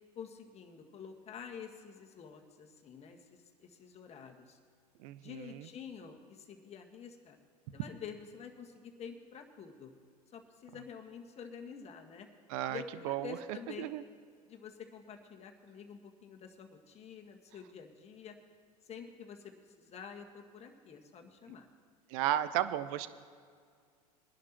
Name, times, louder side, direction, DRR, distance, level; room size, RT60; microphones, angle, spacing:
voice 1, 0.2-4.6 5.2-7.4 7.7-9.9 10.3-12.3 12.7-13.9 14.5-18.3 18.8-19.5 19.8-21.7, left 6 dB, 30° left, 3 dB, 1.6 m, -48 dB
voice 2, 5.0-5.7 12.5-13.4 13.8-14.0 22.1-23.1, right 13 dB, 60° right, 14 dB, 0.7 m, -34 dB
22.5 x 11.0 x 3.0 m, 2.1 s
hypercardioid pair, 90°, 20 cm